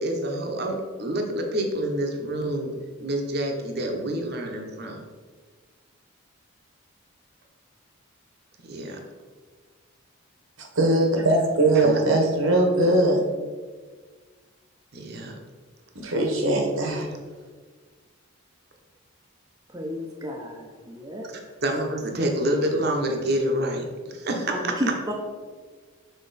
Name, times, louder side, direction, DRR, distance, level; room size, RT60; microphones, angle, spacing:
voice 1, 0.0-2.7 3.0-5.0 8.7-9.0 11.7-12.0 14.9-15.3 21.6-23.8 24.1-24.7, right 1 dB, 50° right, 2 dB, 0.8 m, -27 dB
voice 2, 10.6-13.2 16.0-17.1, right 1 dB, 75° right, 2 dB, 1.1 m, -21 dB
voice 3, 19.7-21.4 24.5-25.1, equal, 15° right, 0 dB, 0.6 m, -32 dB
6.6 x 4.3 x 4.0 m, 1.5 s
head